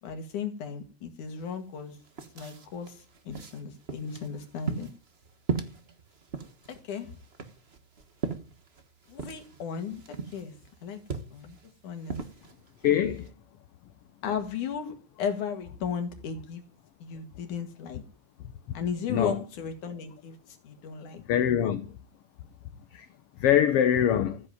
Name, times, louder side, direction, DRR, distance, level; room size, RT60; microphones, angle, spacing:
voice 1, 0.0-2.0 2.4-4.9 6.7-7.2 9.1-10.6 10.8-11.0 11.3-11.6 11.8-12.3 14.2-16.6 17.0-18.0 18.7-21.2, left 6 dB, 85° left, 3.6 m, -35 dB
sound 1, 1.4-1.5 1.8-13.3, right 5 dB, 40° right, 0.8 m, -39 dB
voice 2, 12.8-13.3 19.1-19.3 21.3-21.9 22.9-23.0 23.4-24.4, left 10 dB, 65° left, 1.7 m, -23 dB
14.5 x 7.9 x 9.4 m
omnidirectional pair, 3.4 m